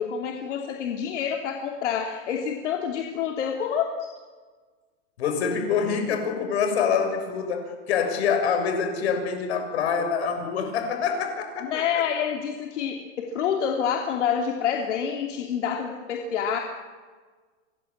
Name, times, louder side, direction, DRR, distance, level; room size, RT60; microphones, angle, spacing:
voice 1, 0.0-3.9 11.6-16.6, left 7 dB, 80° left, 3 dB, 3.1 m, -27 dB
voice 2, 5.2-12.0, left 6 dB, 65° left, 5 dB, 6.8 m, -26 dB
26.0 x 20.0 x 8.7 m, 1.4 s
supercardioid pair, 175°, 35 cm